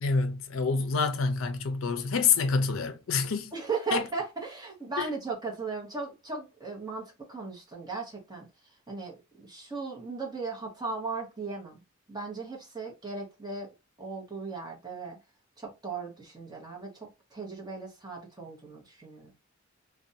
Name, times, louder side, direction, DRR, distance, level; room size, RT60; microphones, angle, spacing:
voice 1, 0.0-3.5 3.9-4.0 5.0-5.1, left 5 dB, 65° left, 0.5 m, -27 dB
voice 2, 3.5-8.5 8.9-11.8 12.1-13.7 14.0-15.2 15.6-16.9 17.3-19.3, right 4 dB, 20° right, 0.9 m, -37 dB
2.5 x 2.2 x 2.6 m
head